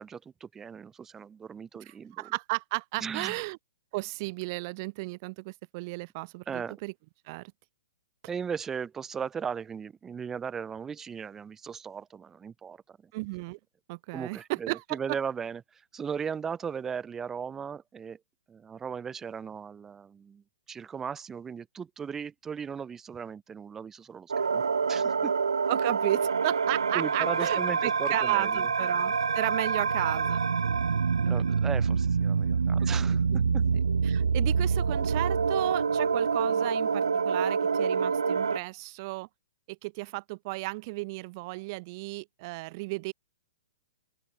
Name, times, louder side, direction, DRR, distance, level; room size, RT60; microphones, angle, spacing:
voice 1, 0.0-2.3 2.9-3.4 6.5-6.8 8.3-13.0 14.1-18.2 18.5-24.6 24.9-25.3 26.9-28.7 31.2-33.2 33.5-33.6, right 6 dB, 15° right, 1.9 m, -37 dB
voice 2, 2.1-3.6 3.9-6.9 7.3-7.5 13.1-13.6 13.9-15.0 25.7-30.4 32.8-33.0 33.3-33.4 34.0-39.3 39.7-43.1, right 25 dB, 45° right, 2.6 m, -34 dB
sound 1, 24.3-38.6, right 5 dB, 85° right, 0.9 m, -26 dB
open air
hypercardioid pair, 125°, 3 cm